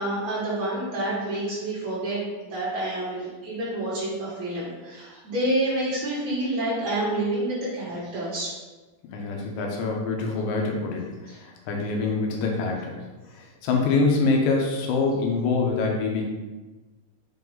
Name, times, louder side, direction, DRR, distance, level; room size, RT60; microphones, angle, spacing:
voice 1, 0.0-8.5, right 1 dB, 55° right, -10 dB, 1.9 m, -28 dB
voice 2, 9.1-11.1 11.4-13.0 13.6-16.3, left 3 dB, 75° left, 0 dB, 3.0 m, -25 dB
7.7 x 2.9 x 5.4 m, 1.2 s
omnidirectional pair, 5.5 m